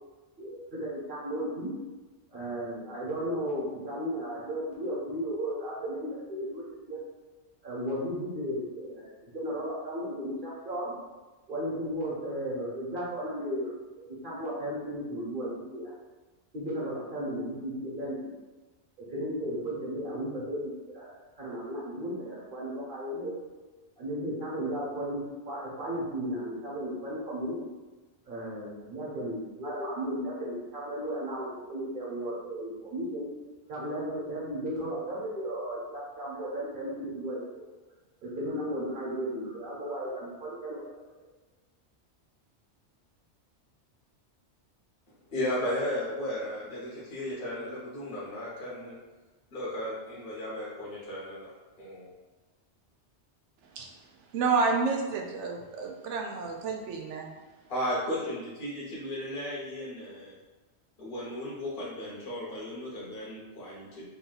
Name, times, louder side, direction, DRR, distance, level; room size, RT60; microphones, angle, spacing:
voice 1, 0.4-1.7 2.3-7.0 7.6-10.9 11.5-13.7 14.2-15.9 16.5-18.3 19.1-23.3 24.0-27.6 28.3-33.3 33.7-37.6 38.3-40.8, equal, 50° right, -6 dB, 1.4 m, -35 dB
voice 2, 45.3-48.9 49.5-52.1 57.7-60.4 61.0-64.1, left 1 dB, 55° left, -7 dB, 1.1 m, -35 dB
voice 3, 54.3-57.3, right 4 dB, 85° right, 1 dB, 0.9 m, -29 dB
3.4 x 2.7 x 3.9 m, 1.2 s
omnidirectional pair, 1.2 m